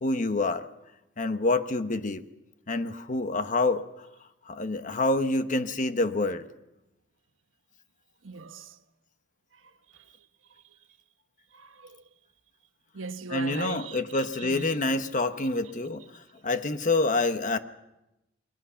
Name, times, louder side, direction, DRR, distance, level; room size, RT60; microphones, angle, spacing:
voice 1, 0.0-0.7 1.2-2.2 2.7-4.1 4.5-6.5 13.3-17.6, left 2 dB, 40° left, 1.1 m, -27 dB
voice 2, 8.2-8.8 11.5-12.0 12.9-14.8, right 4 dB, 90° right, 1.2 m, -39 dB
29.5 x 21.0 x 5.8 m
head